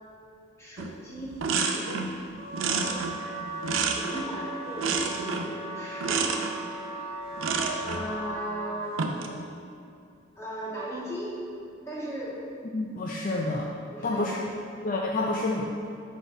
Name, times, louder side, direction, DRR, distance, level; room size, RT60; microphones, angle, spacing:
voice 1, 0.6-2.2 3.8-6.5 7.8-9.3 10.4-11.5 11.8-12.5 13.9-14.6, equal, 15° left, -8 dB, 1.5 m, -37 dB
sound 1, 0.8-0.9 1.2-2.2 2.5-4.4 4.8-5.6 6.0-6.5 7.4-8.1 8.8-9.3, right 4 dB, 80° right, 0.5 m, -29 dB
Wind instrument woodwind instrument, 2.4-8.9, right 2 dB, 25° right, 0.9 m, -38 dB
voice 2, 12.7-13.7 14.0-14.4 14.8-15.7, left 2 dB, 40° left, -2 dB, 0.4 m, -28 dB
5.1 x 4.5 x 5.9 m, 2.5 s
head